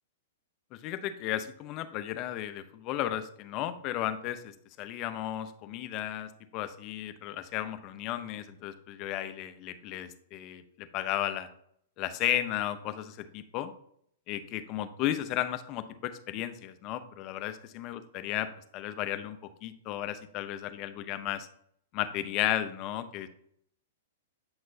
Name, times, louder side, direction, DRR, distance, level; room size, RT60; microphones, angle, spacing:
voice 1, 0.8-4.5 4.8-11.5 12.0-13.7 14.3-18.5 18.7-21.5 21.9-23.3, left 12 dB, 40° left, 10 dB, 0.8 m, -34 dB
8.8 x 5.9 x 2.8 m, 0.67 s
hypercardioid pair, 125°, 0 cm